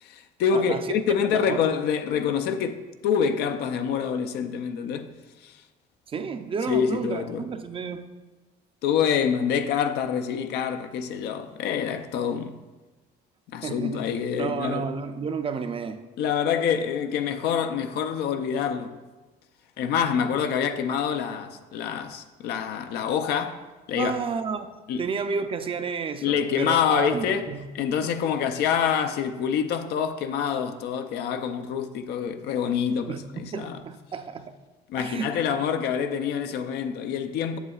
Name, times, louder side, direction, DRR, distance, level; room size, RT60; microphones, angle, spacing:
voice 1, 0.0-5.1 5.4-5.5 6.7-7.4 8.8-12.6 13.5-14.9 16.2-19.0 19.8-24.2 24.9-25.0 26.2-27.5 27.7-33.2 33.5-33.8 34.9-37.6, left 7 dB, 80° left, 0.5 m, -26 dB
voice 2, 0.5-0.9 1.2-1.6 6.1-8.0 13.6-14.0 14.4-16.0 24.0-27.7 28.0-28.1 33.1-34.5 35.0-35.4, right 5 dB, 35° right, 0.4 m, -31 dB
8.0 x 6.9 x 2.4 m
cardioid pair, 110°, 17 cm